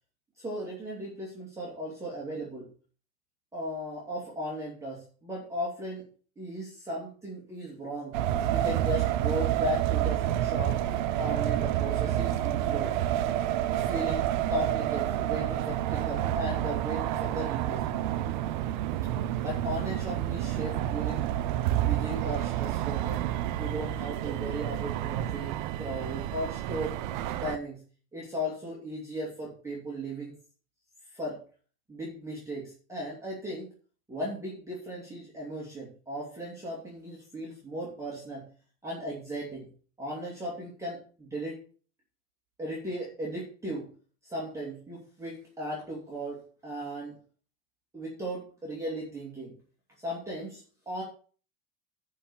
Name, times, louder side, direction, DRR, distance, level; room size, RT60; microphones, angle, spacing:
voice 1, 0.4-2.7 3.5-6.0 6.4-8.1 8.5-10.8 11.1-12.9 13.7-18.0 19.4-21.3 21.7-23.2 23.6-27.0 27.4-27.8 28.1-30.3 31.1-31.4 31.9-33.7 34.1-38.5 38.8-39.7 40.0-41.6 42.6-43.9 44.2-47.1 47.9-49.5 50.0-51.0, equal, 5° right, -5 dB, 2.5 m, -36 dB
sound 1, 8.1-27.6, right 12 dB, 35° right, 0.4 m, -29 dB
11.0 x 4.8 x 7.0 m, 0.41 s
supercardioid pair, 160°, 47 cm